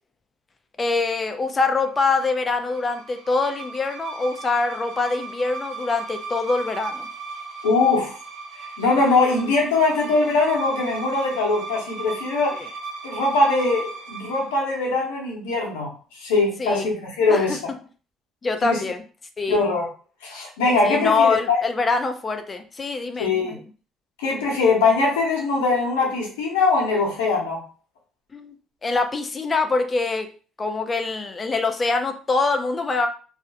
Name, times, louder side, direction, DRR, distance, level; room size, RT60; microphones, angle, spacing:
voice 1, 0.8-7.1 12.5-12.7 16.6-16.9 17.3-17.6 18.4-19.0 19.4-19.6 20.8-23.6 28.3-28.5 28.8-30.3 30.6-33.1, left 3 dB, 30° left, 6 dB, 0.4 m, -24 dB
sound 1, 1.8-14.5, right 4 dB, 65° right, 0.6 m, -37 dB
voice 2, 7.6-8.2 8.8-12.6 13.0-15.9 16.2-17.6 18.6-18.8 19.5-19.9 20.2-21.6 23.2-23.6 24.2-27.6, left 3 dB, 90° left, -2 dB, 0.8 m, -21 dB
2.3 x 2.1 x 2.6 m, 0.39 s
hypercardioid pair, 65°, 0 cm